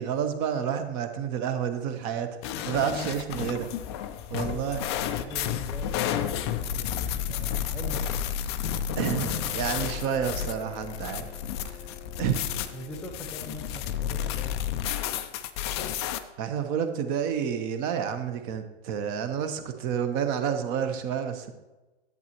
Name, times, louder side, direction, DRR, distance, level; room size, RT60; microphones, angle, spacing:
voice 1, 0.0-2.3 2.7-3.7 4.3-4.8 9.0-11.3 11.7-11.8 12.2-12.4 16.4-21.5, right 8 dB, 30° right, 8 dB, 0.9 m, -29 dB
sound 1, 2.4-16.2, left 9 dB, 25° left, 0.4 m, -31 dB
voice 2, 4.4-4.7 5.2-8.4 12.7-14.6, equal, 5° left, 4 dB, 1.0 m, -43 dB
Bowed string instrument, 8.9-13.8, left 7 dB, 80° left, 0.9 m, -46 dB
10.5 x 8.3 x 3.0 m, 1.1 s
figure-of-eight pair, 115°, 34 cm